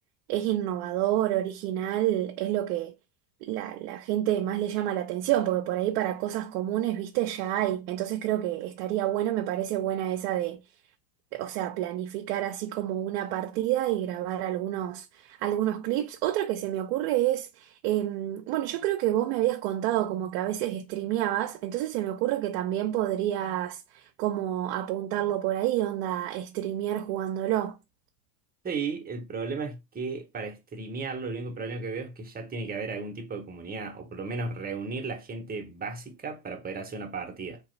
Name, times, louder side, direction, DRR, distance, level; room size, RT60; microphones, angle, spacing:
voice 1, 0.3-2.9 3.4-10.6 11.3-27.8, right 13 dB, 60° right, 0.6 m, -28 dB
voice 2, 28.6-37.6, right 4 dB, 20° right, 0.8 m, -35 dB
3.6 x 2.9 x 3.1 m
supercardioid pair, 115°, 49 cm